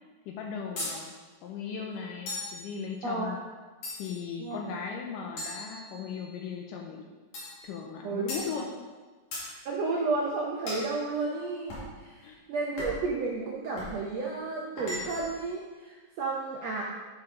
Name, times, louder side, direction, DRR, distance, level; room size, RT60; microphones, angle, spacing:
voice 1, 0.3-1.2 1.4-3.4 4.0-7.0 7.6-8.7 12.2-12.4, left 6 dB, 80° left, 1 dB, 2.1 m, -37 dB
sound 1, 0.8-1.0 2.3-2.6 3.8-4.3 5.4-6.3 7.3-7.6 8.3-8.5 9.3-9.5 10.7-10.9 11.7-11.9 12.8-13.1 13.8-14.0 14.8-15.4, left 1 dB, 60° left, 3.6 m, -37 dB
voice 2, 3.0-3.3 4.4-4.6 8.0-8.3 9.4-16.8, right 3 dB, 80° right, -2 dB, 1.4 m, -32 dB
11.5 x 5.0 x 3.7 m, 1.4 s
omnidirectional pair, 4.0 m